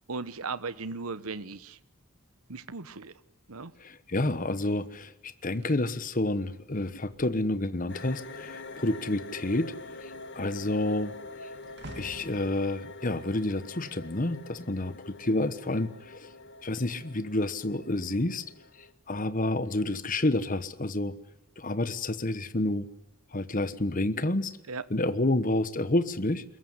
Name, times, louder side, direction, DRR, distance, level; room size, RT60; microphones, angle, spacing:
voice 1, 0.1-1.8 2.5-3.1 3.5-3.7 24.7-24.8, right 4 dB, 80° right, 15 dB, 1.1 m, -37 dB
voice 2, 3.8-9.7 10.0-11.1 12.0-16.3 16.6-18.4 19.1-21.2 21.6-22.9 23.3-24.5 24.9-26.4, left 2 dB, 40° left, 12 dB, 1.2 m, -29 dB
sound 1, 5.5-8.3 8.6-8.9 9.3-14.6 15.3-15.6, right 1 dB, 50° right, 2.7 m, -51 dB
sound 2, 7.9-18.9, left 3 dB, 55° left, 1.9 m, -45 dB
22.5 x 21.5 x 9.6 m, 0.87 s
head